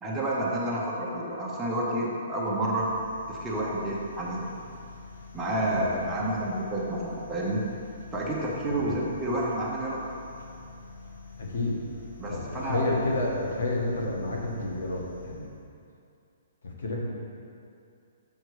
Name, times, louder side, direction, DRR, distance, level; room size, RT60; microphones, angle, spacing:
voice 1, 0.0-2.9 3.3-4.5 5.3-7.7 8.1-10.0 12.2-13.0, right 1 dB, 5° right, -5 dB, 0.8 m, -29 dB
sound 1, 2.8-15.8, left 4 dB, 60° left, 1.0 m, -46 dB
voice 2, 5.7-6.1 8.7-8.9 11.4-11.8 12.3-15.5 16.6-17.1, left 2 dB, 80° left, -1 dB, 1.5 m, -30 dB
6.5 x 5.8 x 4.8 m, 2.5 s
hypercardioid pair, 175°, 0 cm